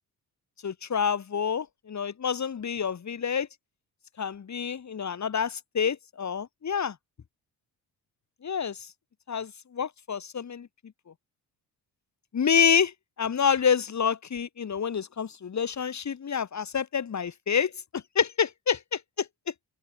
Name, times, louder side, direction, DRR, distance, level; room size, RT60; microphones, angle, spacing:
voice 1, 0.6-3.5 4.2-6.9 8.4-8.8 9.3-10.7 12.3-19.3, left 7 dB, 45° left, 4.1 m, -28 dB
open air
cardioid pair, 95°, 39 cm